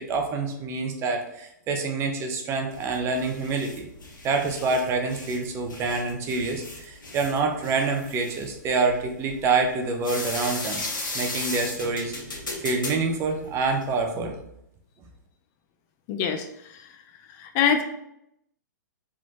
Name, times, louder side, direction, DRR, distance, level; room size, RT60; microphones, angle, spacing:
voice 1, 0.0-3.9 4.2-10.8 11.1-14.3, right 4 dB, 25° right, 3 dB, 0.8 m, -27 dB
sound 1, 2.7-14.0, left 2 dB, 80° left, 1.5 m, -36 dB
voice 2, 16.1-17.0 17.3-17.8, left 7 dB, 35° left, 6 dB, 0.5 m, -26 dB
4.9 x 3.7 x 2.9 m, 0.78 s
hypercardioid pair, 120°, 10 cm